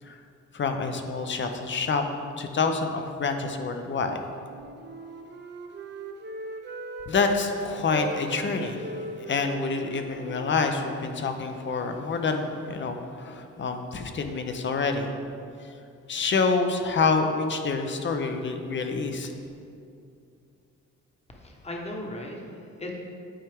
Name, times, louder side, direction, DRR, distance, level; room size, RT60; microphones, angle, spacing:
voice 1, 0.5-2.0 2.4-4.2 7.1-15.1 15.6-15.7 16.1-19.3, left 4 dB, 40° left, 6 dB, 0.6 m, -27 dB
Wind instrument woodwind instrument, 4.4-7.4 7.9-11.7, right 3 dB, 35° right, 0.7 m, -40 dB
voice 2, 21.3-22.9, left 1 dB, 20° left, 0 dB, 1.1 m, -37 dB
8.9 x 4.4 x 3.5 m, 2.5 s
cardioid pair, 90°, 30 cm